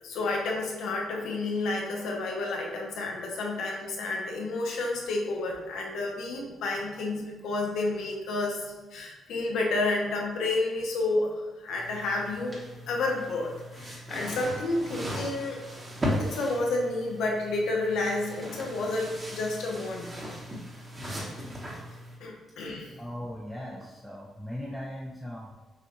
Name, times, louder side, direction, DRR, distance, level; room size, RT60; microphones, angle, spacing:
voice 1, 0.0-11.3 11.6-12.6 12.9-15.6 16.2-20.1 22.2-22.9, left 2 dB, 80° left, 0 dB, 0.8 m, -30 dB
sound 1, 11.8-22.2, equal, 25° right, 1.0 m, -37 dB
voice 2, 23.0-25.5, left 1 dB, ahead, -3 dB, 0.5 m, -38 dB
6.1 x 2.4 x 3.0 m, 1.2 s
cardioid pair, 90°, 0 cm